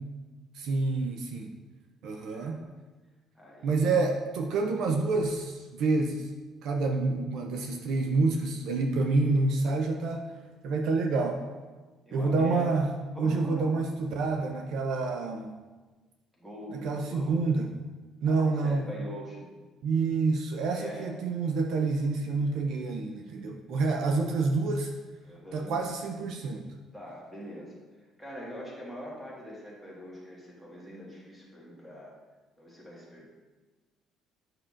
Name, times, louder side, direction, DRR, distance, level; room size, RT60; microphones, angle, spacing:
voice 1, 0.5-1.5 2.0-2.6 3.6-6.3 6.6-10.2 10.6-11.4 12.1-12.9 13.2-15.5 16.7-17.7 18.2-18.9 19.8-24.9 25.5-26.6, right 3 dB, 65° right, 3 dB, 0.6 m, -28 dB
voice 2, 2.2-2.6 3.3-4.0 12.0-12.7 13.1-13.7 16.4-17.3 18.2-19.5 20.7-21.1 25.2-25.8 26.9-27.8 28.2-32.1 32.6-33.3, equal, 5° right, -5 dB, 1.6 m, -43 dB
8.9 x 5.9 x 2.5 m, 1.3 s
cardioid pair, 155°, 0 cm